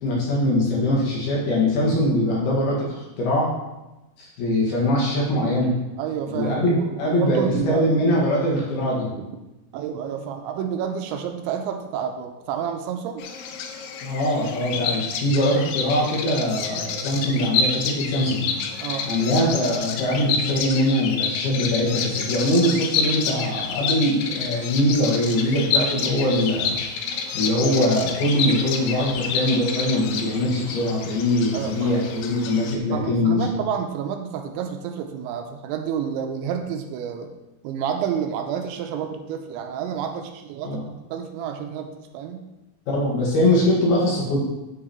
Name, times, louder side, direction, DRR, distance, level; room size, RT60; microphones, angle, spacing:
voice 1, 0.0-3.5 4.2-5.7 6.3-9.1 14.0-18.5 19.0-26.7 27.3-33.4 40.6-40.8 42.9-44.4, left 1 dB, 65° left, -4 dB, 3.4 m, -22 dB
voice 2, 6.0-7.9 9.7-13.3 18.8-19.1 31.5-31.9 32.9-37.3 37.6-40.8 41.1-41.9 42.1-42.5, right 8 dB, 85° right, 5 dB, 2.9 m, -29 dB
Bird vocalization bird call bird song, 13.2-32.8, left 5 dB, 85° left, 2.3 m, -28 dB
9.6 x 4.8 x 4.3 m, 1.0 s
omnidirectional pair, 5.4 m